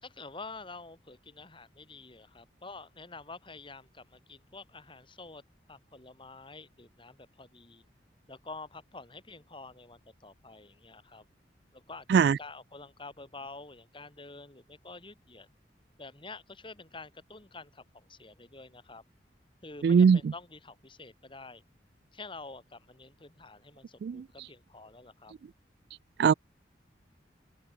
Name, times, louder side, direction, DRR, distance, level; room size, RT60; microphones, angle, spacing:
voice 1, 0.0-5.4 5.7-7.8 8.3-11.3 11.7-15.5 16.0-19.0 19.6-21.6 22.1-25.3, left 3 dB, 30° left, 3.7 m, -48 dB
voice 2, 19.8-20.2 24.0-24.1 26.2-26.3, right 6 dB, 65° right, 0.3 m, -19 dB
open air
head